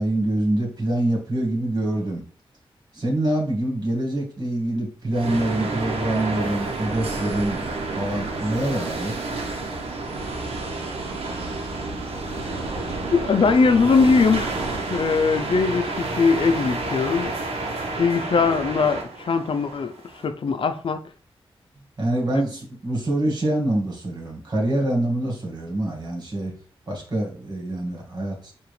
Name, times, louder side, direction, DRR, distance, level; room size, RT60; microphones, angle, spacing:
voice 1, 0.0-2.2 2.9-7.6 8.0-9.1 22.0-26.5 26.9-28.5, right 1 dB, 45° right, 1.9 m, -25 dB
sound 1, 5.1-20.2, right 3 dB, 80° right, 0.9 m, -30 dB
voice 2, 13.1-14.5 14.9-17.3 18.0-19.9 20.2-21.0, left 4 dB, 60° left, 0.5 m, -20 dB
4.7 x 2.6 x 3.2 m
cardioid pair, 60°, 10 cm